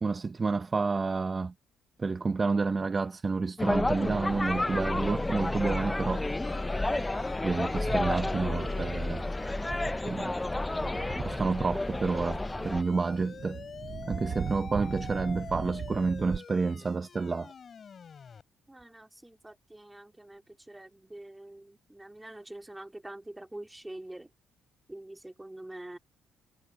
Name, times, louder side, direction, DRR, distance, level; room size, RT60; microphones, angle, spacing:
voice 1, 0.0-1.5 2.0-6.2 6.6-6.7 7.4-9.2 10.0-10.3 11.2-13.6 14.0-17.5, right 4 dB, 25° right, 0.7 m, -29 dB
sound 1, 3.6-12.8, left 2 dB, 10° left, 0.4 m, -31 dB
sound 2, 4.0-18.4, left 6 dB, 40° left, 3.4 m, -46 dB
Thunder, 6.7-16.4, right 7 dB, 45° right, 4.5 m, -41 dB
voice 2, 18.7-24.3 24.9-26.0, right 1 dB, 10° right, 3.2 m, -45 dB
cardioid pair, 115°, 0 cm